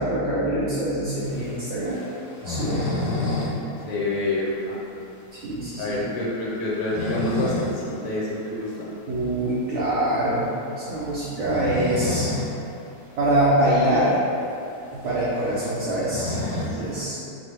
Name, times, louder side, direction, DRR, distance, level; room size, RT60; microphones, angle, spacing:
voice 1, 0.0-2.0 2.4-2.9 5.3-6.0 9.1-10.5 10.8-12.3 13.2-14.2 14.9-16.3 16.6-17.2, right 1 dB, 65° right, -9 dB, 0.7 m, -24 dB
sound 1, 1.2-3.6 3.8-3.9 4.3-4.4 4.9-5.0 6.6-7.8 8.2-8.3 9.8-10.0 11.2-12.5 12.9-13.0 13.2-13.3 14.1-14.2 14.4-17.0, left 2 dB, 15° left, 0.8 m, -29 dB
voice 2, 3.9-4.8 5.8-8.9, left 2 dB, 80° left, -6 dB, 1.4 m, -27 dB
4.6 x 2.0 x 3.2 m, 2.7 s
omnidirectional pair, 1.8 m